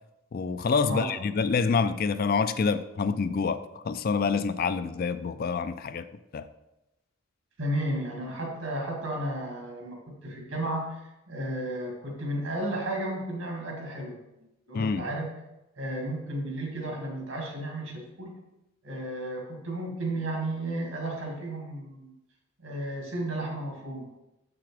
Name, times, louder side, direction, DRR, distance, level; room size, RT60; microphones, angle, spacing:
voice 1, 0.3-6.1 6.3-6.5 14.7-15.1, left 5 dB, 45° left, 12 dB, 0.4 m, -27 dB
voice 2, 7.6-14.2 14.7-15.3 15.8-18.4 18.8-22.1 22.6-24.1, right 1 dB, 80° right, 0 dB, 2.0 m, -33 dB
7.7 x 6.0 x 3.4 m, 0.93 s
head